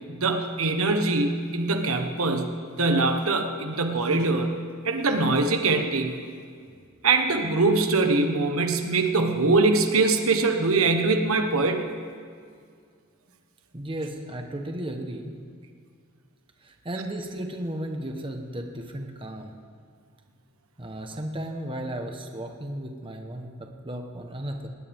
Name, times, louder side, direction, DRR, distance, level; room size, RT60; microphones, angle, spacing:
voice 1, 0.1-2.5 2.8-4.6 4.8-6.2 7.0-11.9, right 3 dB, 80° right, 5 dB, 1.4 m, -23 dB
voice 2, 13.7-15.4 16.6-19.5 20.8-24.7, right 1 dB, 25° right, 3 dB, 1.2 m, -34 dB
19.5 x 19.5 x 3.6 m, 2.1 s
head